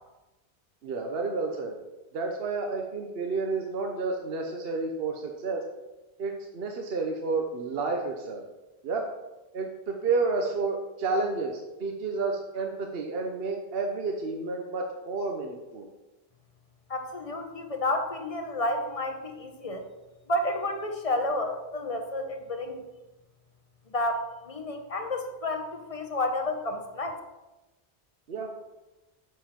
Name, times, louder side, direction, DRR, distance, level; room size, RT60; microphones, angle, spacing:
voice 1, 0.8-1.8 2.1-5.6 6.2-8.4 8.8-9.1 9.5-15.9 28.3-28.5, right 3 dB, 65° right, 3 dB, 1.1 m, -30 dB
voice 2, 16.9-19.8 20.3-22.8 23.9-27.2, left 1 dB, 35° left, 5 dB, 1.0 m, -31 dB
7.5 x 5.4 x 5.8 m, 1.1 s
omnidirectional pair, 1.1 m